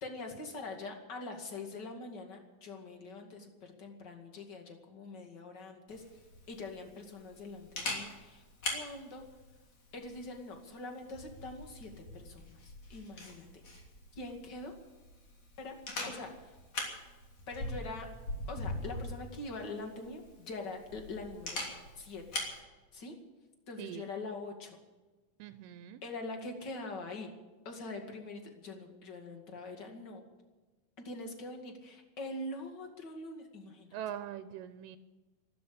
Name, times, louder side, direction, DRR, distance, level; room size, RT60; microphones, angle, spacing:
voice 1, 0.0-8.4 8.7-9.2 9.9-13.5 14.1-14.7 15.6-15.8 16.0-16.6 17.5-18.1 18.5-21.7 22.0-22.2 22.9-23.2 23.7-24.8 26.0-27.3 27.6-30.2 31.0-34.0, left 2 dB, 35° left, 3 dB, 2.5 m, -44 dB
Camera, 5.9-22.6, left 2 dB, 50° left, 4.1 m, -43 dB
voice 2, 23.8-24.1 25.4-26.0 33.9-35.0, right 10 dB, 90° right, 11 dB, 2.4 m, -42 dB
13.0 x 13.0 x 8.6 m, 1.2 s
omnidirectional pair, 3.8 m